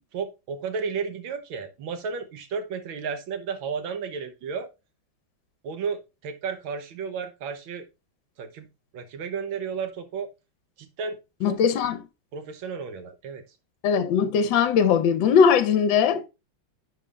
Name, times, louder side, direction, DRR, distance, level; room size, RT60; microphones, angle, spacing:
voice 1, 0.1-4.7 5.6-7.9 8.4-8.7 8.9-10.3 10.8-11.2 11.5-11.6 12.3-13.4, right 5 dB, 85° right, 1.7 m, -33 dB
voice 2, 11.4-12.0 13.8-16.3, left 7 dB, 75° left, 1.5 m, -20 dB
10.0 x 3.8 x 3.3 m
omnidirectional pair, 2.1 m